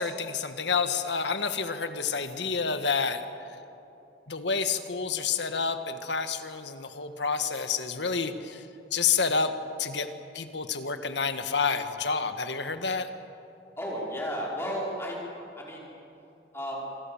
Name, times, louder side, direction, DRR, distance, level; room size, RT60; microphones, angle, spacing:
voice 1, 0.0-3.2 4.3-8.6 8.9-9.5 9.8-10.1 10.3-13.1, left 5 dB, 90° left, 8 dB, 1.6 m, -29 dB
voice 2, 13.8-15.2 15.5-15.9 16.5-16.8, equal, 15° left, -3 dB, 5.2 m, -33 dB
26.5 x 23.5 x 7.3 m, 2.8 s
head